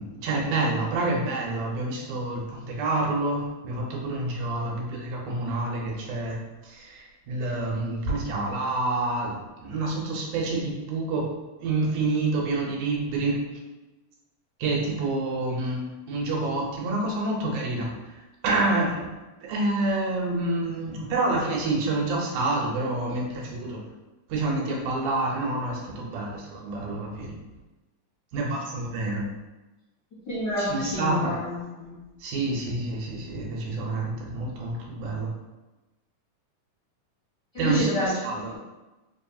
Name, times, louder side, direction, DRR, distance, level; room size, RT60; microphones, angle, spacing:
voice 1, 0.0-6.4 6.6-11.3 11.6-13.4 14.6-18.0 18.4-19.1 19.4-23.8 24.3-27.3 28.3-29.3 30.6-31.4 32.2-35.3 37.6-38.6, right 2 dB, 90° right, -2 dB, 2.2 m, -28 dB
voice 2, 30.3-31.9 37.5-38.6, equal, 70° left, -11 dB, 1.0 m, -28 dB
5.0 x 2.3 x 2.7 m, 1.1 s
omnidirectional pair, 3.4 m